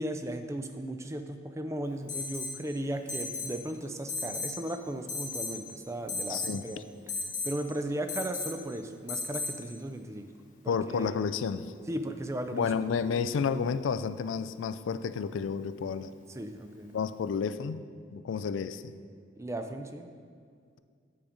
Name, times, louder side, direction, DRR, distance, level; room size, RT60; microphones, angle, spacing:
voice 1, 0.0-6.8 7.4-10.3 10.6-11.1 11.9-12.9 13.1-13.3 16.3-16.9 19.4-20.1, right 1 dB, 15° right, 7 dB, 0.4 m, -36 dB
Alarm, 2.1-2.6 3.1-3.5 4.1-4.6 5.1-5.6 6.1-6.6 7.1-7.5 8.1-8.5 9.1-9.5, left 3 dB, 40° left, 1.2 m, -34 dB
voice 2, 6.3-6.6 10.7-11.7 12.5-16.1 16.9-17.8 18.1-18.8, left 6 dB, 85° left, 13 dB, 0.3 m, -31 dB
8.5 x 5.1 x 5.0 m, 2.1 s
head